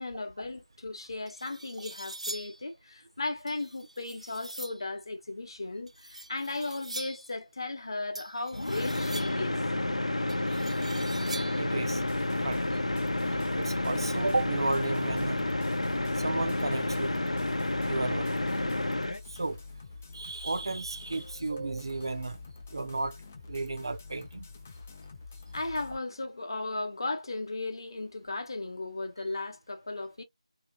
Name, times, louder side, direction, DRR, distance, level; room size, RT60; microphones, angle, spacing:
voice 1, 0.0-9.6 21.1-21.4 25.5-30.2, left 2 dB, 45° left, 0.8 m, -36 dB
sound 1, 0.7-0.8 1.3-2.6 3.5-4.9 5.9-7.3 8.1-9.5 10.3-11.7, right 1 dB, 75° right, 1.1 m, -43 dB
sound 2, 8.5-19.2, left 1 dB, 85° left, 0.7 m, -30 dB
voice 2, 11.6-12.0 12.4-12.7 13.3-15.5 16.2-17.2 17.8-18.3 19.3-19.6 20.1-22.4 22.7-23.2 23.5-24.4, right 3 dB, 45° right, 0.5 m, -33 dB
sound 3, 11.9-26.0, left 4 dB, 15° left, 0.4 m, -47 dB
3.1 x 2.8 x 2.8 m
figure-of-eight pair, 170°, 3 cm